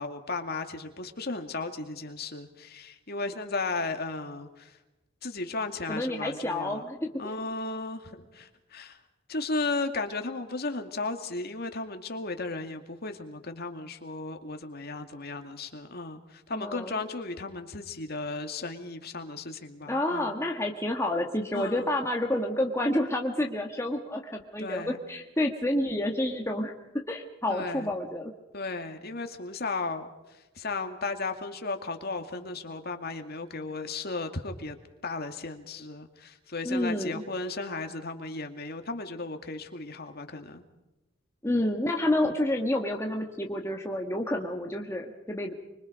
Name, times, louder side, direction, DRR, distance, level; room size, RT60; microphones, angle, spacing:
voice 1, 0.0-4.8 5.2-6.8 7.2-9.0 9.3-20.3 21.5-21.9 24.6-25.0 27.5-27.9 28.5-34.8 35.0-40.6, left 3 dB, 55° left, 6 dB, 2.3 m, -35 dB
voice 2, 5.9-7.3 16.5-16.9 19.9-26.7 27.1-28.3 36.7-37.2 41.4-45.5, left 1 dB, 15° left, 1 dB, 1.7 m, -29 dB
25.0 x 25.0 x 5.2 m, 1.0 s
head